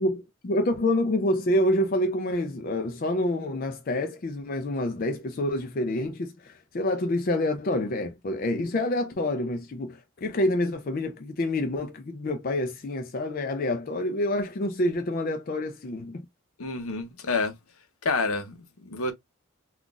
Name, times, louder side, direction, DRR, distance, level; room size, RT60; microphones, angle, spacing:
voice 1, 0.0-16.2, left 1 dB, 40° left, 0.4 m, -27 dB
voice 2, 16.6-17.5 18.0-19.1, left 3 dB, 75° left, 0.7 m, -28 dB
3.8 x 2.4 x 2.3 m
head